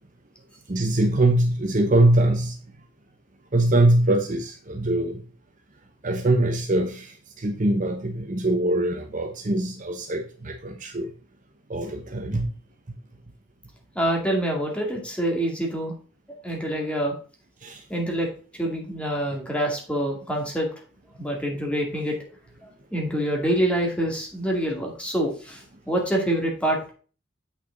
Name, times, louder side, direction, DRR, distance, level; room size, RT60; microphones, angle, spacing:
voice 1, 0.7-2.6 3.5-5.2 6.0-11.1 11.7-12.5 17.6-17.9, right 1 dB, 40° right, 0.9 m, -23 dB
voice 2, 14.0-15.9 16.4-17.1 17.9-18.3 18.5-20.7 21.2-22.2 22.6-26.9, right 1 dB, 5° left, 2.2 m, -26 dB
8.1 x 6.0 x 3.9 m
head